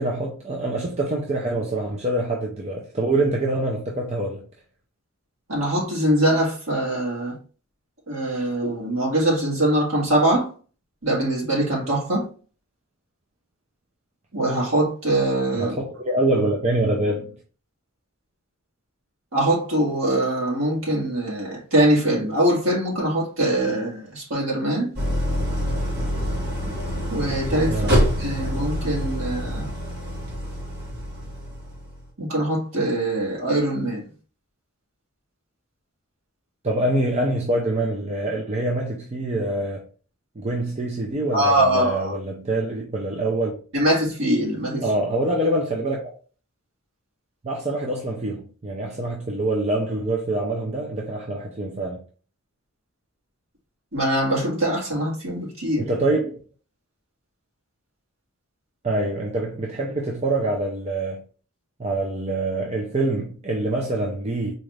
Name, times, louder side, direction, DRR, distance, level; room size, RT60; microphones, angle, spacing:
voice 1, 0.0-4.5 15.6-17.4 27.7-28.0 36.6-39.9 40.4-43.6 44.8-46.1 47.4-52.0 55.9-56.4 58.8-61.2 61.8-64.5, right 2 dB, 30° right, 0.5 m, -25 dB
voice 2, 5.5-7.4 8.1-10.5 11.0-12.3 14.3-15.7 19.3-24.9 27.1-27.8 28.2-29.7 32.2-34.1 41.3-42.1 43.7-44.8 53.9-55.9, right 1 dB, 70° right, 1.8 m, -22 dB
Idling, 24.9-32.0, equal, 50° right, 1.3 m, -26 dB
4.0 x 2.5 x 3.2 m
head